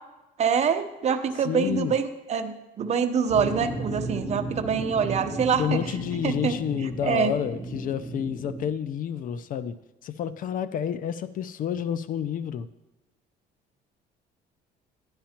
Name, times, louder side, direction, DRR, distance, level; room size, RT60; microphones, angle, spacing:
voice 1, 0.4-5.8 6.2-6.5 7.0-7.3, right 6 dB, 40° right, 7 dB, 0.8 m, -25 dB
voice 2, 1.4-2.0 5.6-9.8 10.0-12.7, left 9 dB, 55° left, 14 dB, 0.4 m, -29 dB
sound 1, 3.3-8.6, right 2 dB, 15° left, 2.3 m, -34 dB
11.0 x 10.5 x 2.9 m, 1.0 s
cardioid pair, 110°, 17 cm